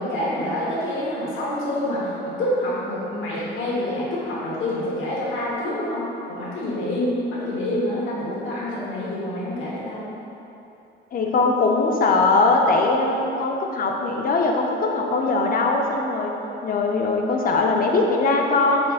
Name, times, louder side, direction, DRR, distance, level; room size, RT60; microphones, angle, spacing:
voice 1, 0.0-10.1, left 1 dB, 80° left, -7 dB, 1.2 m, -27 dB
voice 2, 11.1-16.3 16.6-18.9, left 3 dB, 45° left, 1 dB, 0.6 m, -21 dB
4.8 x 4.3 x 2.4 m, 2.9 s
cardioid pair, 90°, 20 cm